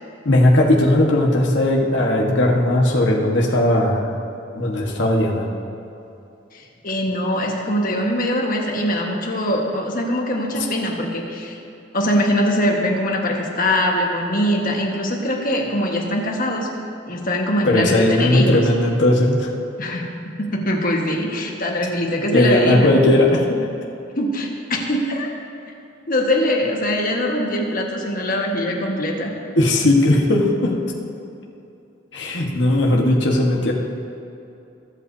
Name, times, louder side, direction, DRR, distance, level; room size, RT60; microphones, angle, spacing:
voice 1, 0.2-4.1 4.5-5.5 17.7-19.5 22.3-23.5 29.5-30.7 32.1-33.7, left 1 dB, 70° left, -1 dB, 1.4 m, -17 dB
voice 2, 6.5-11.6 11.9-16.7 17.1-18.6 19.8-22.9 24.2-25.3 26.1-29.3, left 1 dB, 50° left, 0 dB, 1.5 m, -22 dB
22.0 x 8.2 x 2.7 m, 2.8 s
head